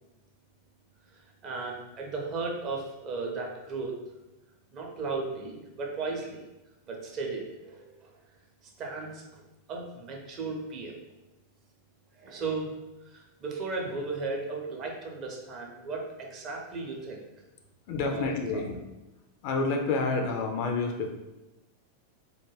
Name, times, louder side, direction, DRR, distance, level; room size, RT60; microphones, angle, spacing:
voice 1, 1.1-4.0 4.7-6.4 6.9-8.1 8.6-9.4 9.7-11.0 12.2-12.8 13.0-17.2 18.0-18.2 18.5-18.6, right 3 dB, 35° right, 0 dB, 0.5 m, -36 dB
voice 2, 17.9-18.8 19.4-21.1, left 3 dB, 45° left, 3 dB, 0.3 m, -29 dB
2.2 x 2.1 x 3.2 m, 1.0 s
figure-of-eight pair, 90°, 0 cm